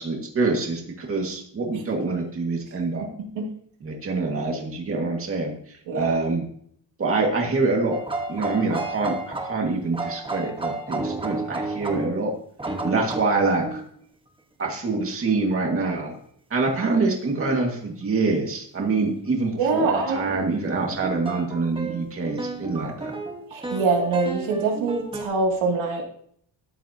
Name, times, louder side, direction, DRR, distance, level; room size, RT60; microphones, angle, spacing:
voice 1, 0.0-3.1 3.8-6.4 7.0-8.0 8.3-12.3 12.8-13.8 14.6-16.1 16.5-23.1, right 3 dB, 30° right, 0 dB, 2.1 m, -25 dB
sound 1, 7.9-12.2 12.6-13.9 15.5-15.7 16.8-16.9 17.4-17.6 19.9-25.2, right 2 dB, 10° right, 1.4 m, -32 dB
voice 2, 19.6-20.4 23.5-26.0, right 3 dB, 90° right, 0 dB, 2.8 m, -24 dB
13.5 x 11.0 x 2.9 m, 0.64 s
cardioid pair, 165°, 45 cm